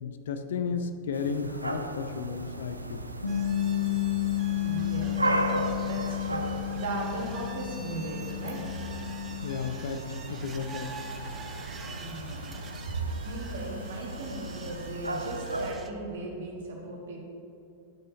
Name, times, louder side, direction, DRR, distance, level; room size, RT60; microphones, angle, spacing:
voice 1, 0.0-3.1 9.4-11.0, left 5 dB, 60° left, 8 dB, 0.5 m, -33 dB
sound 1, 1.1-15.7, right 1 dB, 80° right, 0.4 m, -36 dB
Bass guitar, 3.2-9.5, left 12 dB, 80° left, 1.1 m, -31 dB
sound 2, 3.3-15.9, right 4 dB, 20° right, 0.6 m, -46 dB
voice 2, 4.6-6.5 6.8-8.7 11.8-12.5 13.2-17.2, right 2 dB, 60° right, 0 dB, 1.6 m, -38 dB
10.5 x 5.6 x 4.1 m, 2.6 s
figure-of-eight pair, 90°, 0 cm